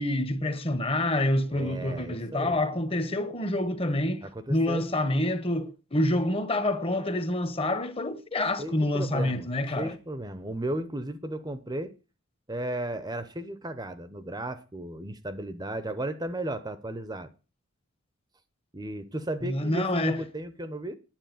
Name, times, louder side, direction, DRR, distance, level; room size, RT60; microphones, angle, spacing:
voice 1, 0.0-9.9 19.4-20.2, left 1 dB, 25° left, 1.2 m, -27 dB
voice 2, 1.5-2.6 4.2-4.9 8.6-9.5 9.8-11.9 12.5-17.3 18.7-20.9, right 1 dB, 20° right, 0.8 m, -35 dB
10.5 x 7.6 x 9.2 m
head